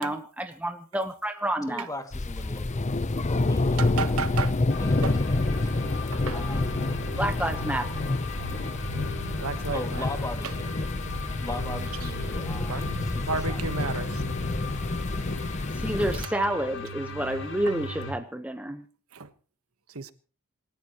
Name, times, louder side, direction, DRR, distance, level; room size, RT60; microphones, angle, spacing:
voice 1, 0.0-1.9 7.2-7.9 15.7-18.8, right 1 dB, 5° right, 1.0 m, -29 dB
voice 2, 1.7-5.4 5.8-6.8 9.7-10.7 11.4-14.0, left 1 dB, 15° left, 2.2 m, -40 dB
sound 1, 2.1-16.3, left 2 dB, 30° left, 0.7 m, -28 dB
voice 3, 3.8-4.5 5.0-5.1 6.1-6.4 9.4-10.1 12.7-12.8 13.2-14.1 19.1-19.3 19.9-20.1, right 4 dB, 70° right, 1.3 m, -32 dB
sound 2, 4.7-18.1, left 3 dB, 60° left, 5.6 m, -38 dB
27.5 x 14.5 x 3.0 m
head